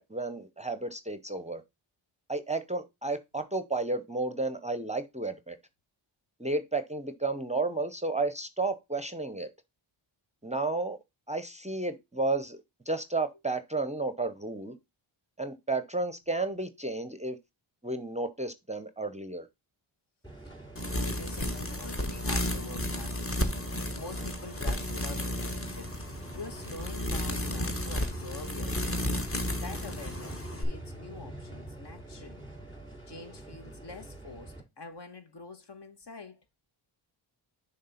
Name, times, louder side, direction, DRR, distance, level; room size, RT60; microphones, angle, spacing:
voice 1, 0.0-1.6 2.3-5.6 6.4-9.5 10.4-11.0 11.3-12.6 12.9-14.7 15.4-17.4 17.8-19.5, right 3 dB, 15° right, 0.6 m, -32 dB
sound 1, 20.2-34.6, right 1 dB, 10° left, 3.7 m, -44 dB
voice 2, 20.8-29.0 29.6-32.5 33.1-36.4, left 3 dB, 55° left, 1.6 m, -46 dB
sound 2, 20.8-30.6, left 1 dB, 25° left, 1.3 m, -33 dB
6.5 x 3.7 x 5.6 m
cardioid pair, 75°, 49 cm